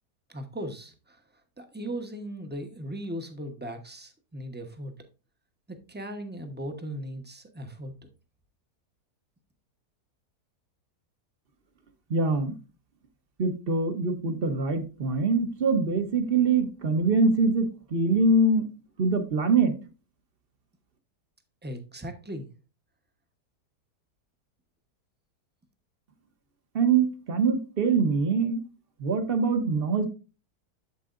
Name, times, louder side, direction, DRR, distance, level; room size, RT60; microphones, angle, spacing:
voice 1, 0.3-1.2 1.6-4.9 5.7-8.1 21.6-22.5, right 1 dB, 10° right, 6 dB, 0.8 m, -38 dB
voice 2, 12.1-12.6 13.4-18.6 19.0-19.7 26.7-28.6 29.0-30.1, right 3 dB, 40° right, 8 dB, 1.0 m, -24 dB
8.4 x 7.6 x 2.5 m, 0.32 s
omnidirectional pair, 1.7 m